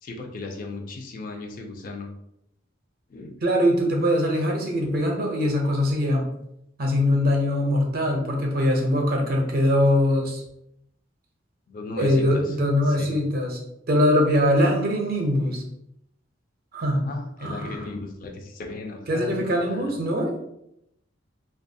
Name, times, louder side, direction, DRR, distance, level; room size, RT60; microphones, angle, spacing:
voice 1, 0.0-2.1 3.1-3.4 11.7-12.5 12.9-13.1 16.9-19.9, left 3 dB, 45° left, 2 dB, 0.4 m, -36 dB
voice 2, 3.4-6.3 6.8-10.4 12.0-13.6 13.9-15.6 16.7-17.1 17.4-17.8 19.1-20.4, left 1 dB, 50° right, 1 dB, 0.5 m, -22 dB
2.5 x 2.3 x 2.6 m, 0.79 s
head